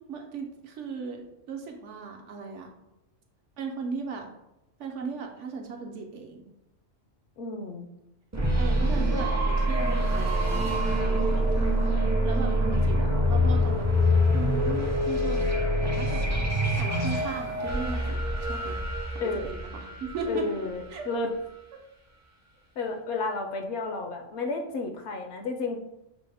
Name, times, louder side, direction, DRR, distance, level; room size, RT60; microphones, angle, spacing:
voice 1, 0.1-2.7 3.6-4.3 4.8-6.4 8.6-13.9 14.3-15.5 15.8-16.4 16.8-18.8 19.1-20.5 20.9-21.1, right 5 dB, 70° right, 3 dB, 0.9 m, -37 dB
voice 2, 7.4-7.9 19.2-19.5 20.3-21.3 22.8-25.8, left 3 dB, 70° left, 4 dB, 0.8 m, -32 dB
sound 1, 8.3-21.0, equal, 25° right, 0.4 m, -25 dB
6.0 x 2.1 x 3.3 m, 0.89 s
omnidirectional pair, 1.3 m